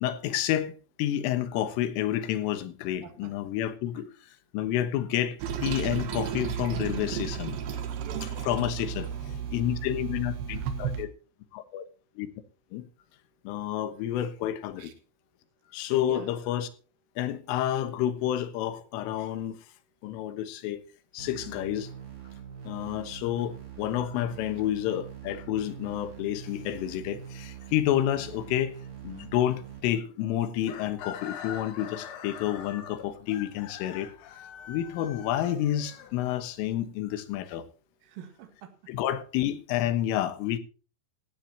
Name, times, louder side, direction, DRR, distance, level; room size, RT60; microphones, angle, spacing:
voice 1, 0.0-0.7 1.0-4.1 4.5-5.4 5.6-7.6 8.4-9.1 9.5-11.1 11.5-11.9 12.2-12.3 12.7-12.9 13.5-14.9 15.7-16.7 17.2-19.5 20.0-20.8 21.1-21.9 22.7-28.7 29.0-34.1 34.7-37.7 38.9-40.6, left 12 dB, 85° left, 3.8 m, -29 dB
voice 2, 3.0-3.3 7.9-8.7 14.8-14.9 16.0-16.4 38.0-38.7, right 9 dB, 80° right, 4.4 m, -46 dB
Toilet flush, 5.4-11.0, right 8 dB, 65° right, 3.0 m, -33 dB
sound 1, 21.2-29.8, right 8 dB, 50° right, 7.0 m, -43 dB
Chicken rooster, 30.6-36.6, left 8 dB, 70° left, 3.8 m, -43 dB
17.5 x 15.0 x 2.9 m
omnidirectional pair, 5.7 m